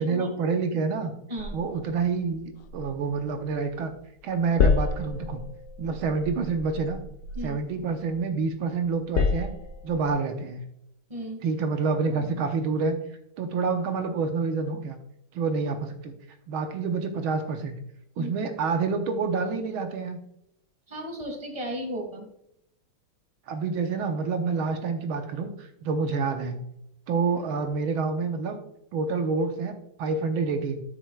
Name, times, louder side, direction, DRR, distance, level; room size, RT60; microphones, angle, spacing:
voice 1, 0.0-1.1 1.5-3.9 4.2-5.4 5.8-7.0 7.4-9.5 9.8-10.6 11.4-13.0 13.4-15.0 15.3-16.1 16.5-17.8 18.2-20.2 23.5-26.6 27.1-28.6 28.9-30.8, right 4 dB, 85° right, 6 dB, 1.7 m, -28 dB
sound 1, 1.4-3.9 4.2-8.4 8.8-10.1, left 5 dB, 65° left, 0.8 m, -30 dB
voice 2, 11.1-11.4 18.2-18.3 20.9-22.3, equal, 20° right, 2 dB, 1.6 m, -35 dB
12.0 x 6.3 x 2.3 m, 0.78 s
omnidirectional pair, 2.2 m